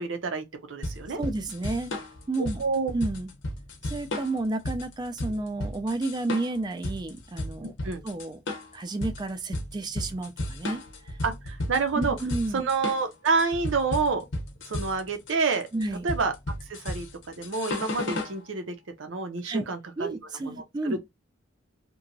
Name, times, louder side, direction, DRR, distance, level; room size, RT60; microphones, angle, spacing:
voice 1, 0.0-1.2 2.6-2.9 7.6-8.0 11.2-12.2 12.5-14.2 14.7-15.7 16.0-16.3 16.7-20.2 20.5-21.0, right 4 dB, 90° right, 0.6 m, -28 dB
sound 1, 0.8-18.4, left 1 dB, 75° left, 0.8 m, -34 dB
voice 2, 1.2-1.9 2.3-2.6 2.9-3.3 3.8-7.7 8.0-8.4 8.7-11.2 11.9-12.6 15.7-16.0 19.4-19.6 20.0-21.0, right 2 dB, 20° right, 0.4 m, -31 dB
2.9 x 2.2 x 2.6 m
head